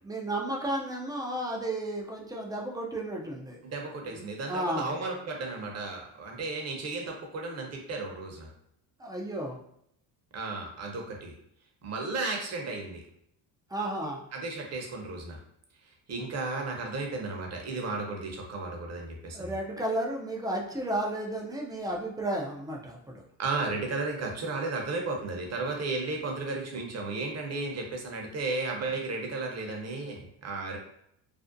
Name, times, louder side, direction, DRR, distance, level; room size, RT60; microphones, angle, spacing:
voice 1, 0.0-3.6 4.1-4.9 9.0-9.6 13.7-14.2 19.3-23.2, right 1 dB, 10° right, -1 dB, 0.3 m, -33 dB
voice 2, 3.6-8.5 10.3-11.3 11.8-13.0 14.3-15.4 16.1-19.6 23.4-30.8, right 3 dB, 35° right, 1 dB, 0.7 m, -34 dB
2.6 x 2.1 x 2.5 m, 0.71 s
supercardioid pair, 85°, 47 cm